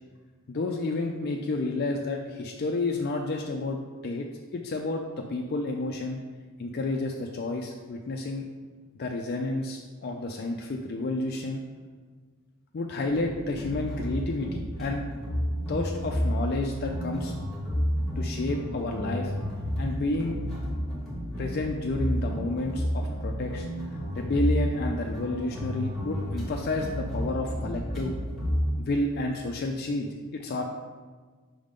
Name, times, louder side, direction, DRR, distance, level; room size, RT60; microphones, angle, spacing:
voice 1, 0.5-6.2 6.6-8.5 9.0-11.6 12.7-15.1 15.7-17.3 18.2-19.3 19.8-20.4 21.4-23.7 24.1-28.2 28.8-30.6, left 2 dB, 45° left, 2 dB, 0.4 m, -30 dB
sound 1, 13.0-28.7, equal, ahead, 1.3 m, -31 dB
5.3 x 3.6 x 5.1 m, 1.5 s
head